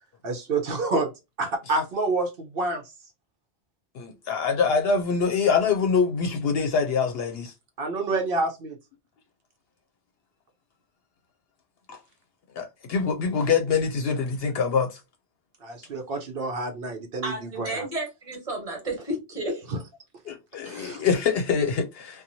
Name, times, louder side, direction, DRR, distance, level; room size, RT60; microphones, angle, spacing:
voice 1, 0.2-1.1 1.4-2.8 7.8-8.8 15.6-17.9 19.7-19.8 20.6-21.0, right 3 dB, 60° right, 0.8 m, -28 dB
voice 2, 3.9-7.5 11.9-12.0 12.6-15.0 20.3-22.2, left 5 dB, 70° left, 0.8 m, -24 dB
voice 3, 17.2-19.7, right 1 dB, 35° right, 1.3 m, -32 dB
2.8 x 2.3 x 2.5 m
omnidirectional pair, 1.1 m